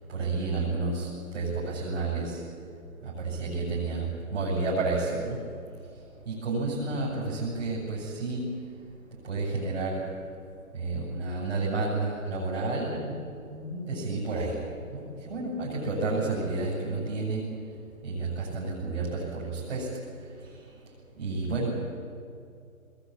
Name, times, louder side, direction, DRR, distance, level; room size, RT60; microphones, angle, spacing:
voice 1, 0.1-1.1 1.3-2.4 3.0-5.4 6.3-8.5 9.3-10.0 10.7-13.2 13.5-14.5 14.9-17.4 18.0-19.9 21.2-21.8, right 3 dB, 45° right, -6 dB, 7.6 m, -30 dB
21.0 x 19.5 x 8.7 m, 2.4 s
hypercardioid pair, 170°, 43 cm